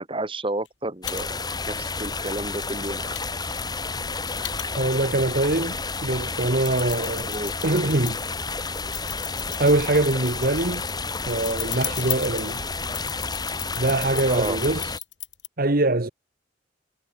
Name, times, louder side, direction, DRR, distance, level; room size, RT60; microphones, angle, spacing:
voice 1, 0.0-1.4 1.7-1.8 2.0-3.1 7.3-7.5 14.3-14.6, right 2 dB, 25° right, 2.3 m, -30 dB
sound 1, 0.7-0.8 1.1-1.2 1.5-1.9 2.6-2.7 3.2-5.1 5.6-5.7 6.2-8.3 8.9-15.5, left 17 dB, 70° left, 2.5 m, -36 dB
sound 2, 1.0-15.0, left 4 dB, 20° left, 3.2 m, -31 dB
voice 2, 4.8-7.3 7.6-8.2 9.6-10.8 11.3-12.6 13.8-15.0 15.6-16.1, right 2 dB, 50° right, 1.3 m, -23 dB
head